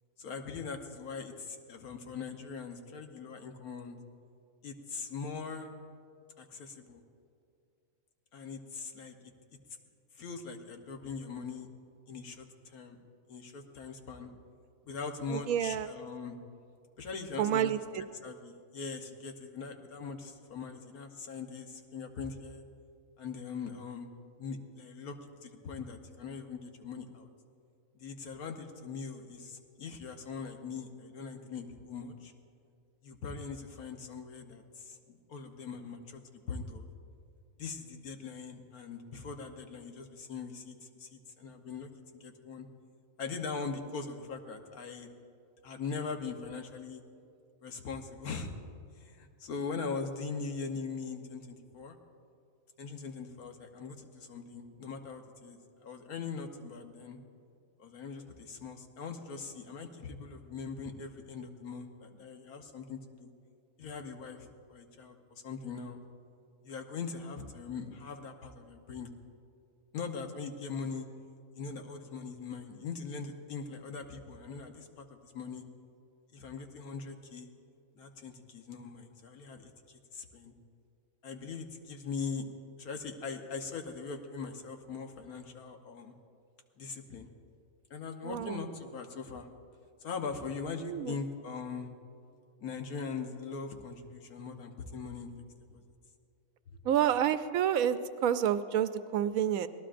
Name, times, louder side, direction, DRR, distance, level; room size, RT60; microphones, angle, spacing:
voice 1, 0.2-4.0 4.6-5.7 6.4-7.0 8.3-9.3 10.1-11.7 12.1-13.0 13.3-14.3 14.8-16.4 17.0-17.8 18.2-22.6 23.2-24.1 24.4-27.3 27.9-32.3 33.0-36.9 37.6-42.7 43.2-45.1 45.6-47.0 47.6-48.5 48.9-52.0 52.8-57.2 57.8-63.3 63.8-66.0 66.6-69.1 69.9-71.1 71.5-75.6 76.3-77.5 77.9-80.5 81.2-82.4 82.8-86.1 86.8-87.3 87.9-89.5 90.0-91.9 92.6-95.3 95.7-95.8, left 5 dB, 85° left, 4 dB, 1.6 m, -41 dB
voice 2, 15.3-15.9 17.4-18.0 88.2-88.5 90.8-91.1 96.8-99.7, right 9 dB, 75° right, 11 dB, 1.0 m, -29 dB
25.0 x 18.0 x 2.6 m, 2.4 s
omnidirectional pair, 1.5 m